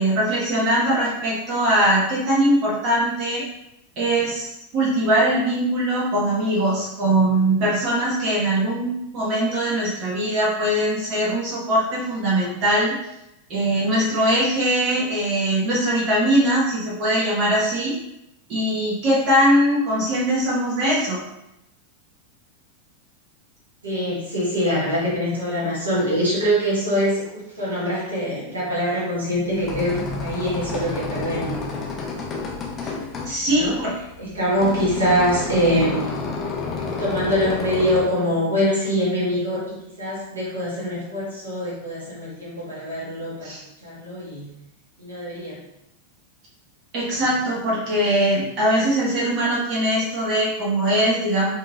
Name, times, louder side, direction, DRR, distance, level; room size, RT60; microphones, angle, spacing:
voice 1, 0.0-3.4 4.0-13.0 13.5-18.0 18.5-21.2 32.8-32.9 33.2-33.9 43.4-43.6 46.9-51.5, right 1 dB, 40° right, -5 dB, 1.3 m, -21 dB
voice 2, 23.8-31.6 33.5-33.8 34.2-36.1 37.0-43.5 43.8-44.5 45.0-45.6, equal, 75° right, -6 dB, 1.4 m, -24 dB
sound 1, 29.4-38.1, left 4 dB, 25° left, 0.8 m, -30 dB
4.4 x 3.1 x 2.4 m, 0.86 s
figure-of-eight pair, 90°, 0 cm